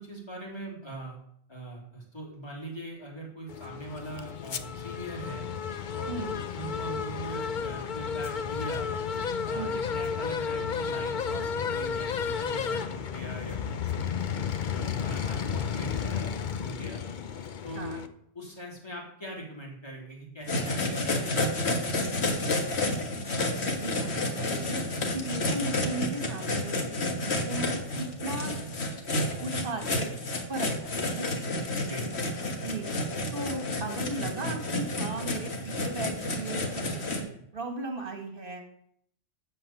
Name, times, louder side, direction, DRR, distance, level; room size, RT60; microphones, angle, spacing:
voice 1, 0.0-1.2 1.5-5.5 5.9-8.9 9.4-14.1 14.6-17.0 17.6-18.0 18.3-22.6 31.8-32.1, right 1 dB, 25° left, -3 dB, 3.2 m, -41 dB
sound 1, 3.5-18.1, left 6 dB, 50° left, 0.8 m, -32 dB
voice 2, 6.1-6.4 9.5-9.8 17.7-18.0 23.7-24.8 25.1-28.6 29.4-30.1 30.5-31.3 32.5-32.9 33.3-36.8 37.1-38.6, right 3 dB, 55° right, 4 dB, 2.0 m, -37 dB
sound 2, 20.5-37.2, left 2 dB, 80° left, 1.8 m, -30 dB
13.5 x 4.5 x 7.8 m, 0.69 s
omnidirectional pair, 1.1 m